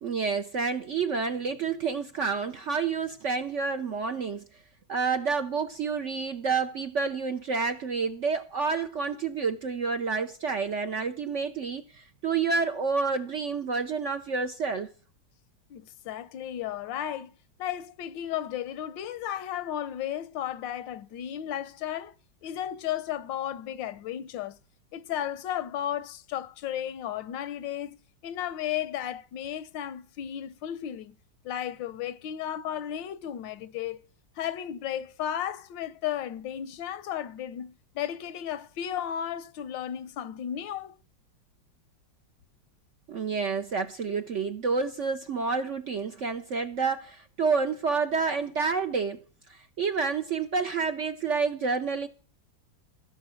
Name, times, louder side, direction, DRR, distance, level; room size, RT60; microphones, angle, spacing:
voice 1, 0.0-4.4 4.9-14.9 43.1-49.2 49.5-52.1, right 5 dB, 60° right, 0.8 m, -29 dB
voice 2, 15.7-17.3 17.6-22.1 22.4-24.6 24.9-28.0 28.2-31.1 31.4-34.0 34.4-41.0, left 10 dB, 80° left, 1.4 m, -34 dB
15.0 x 6.8 x 6.3 m
omnidirectional pair, 2.0 m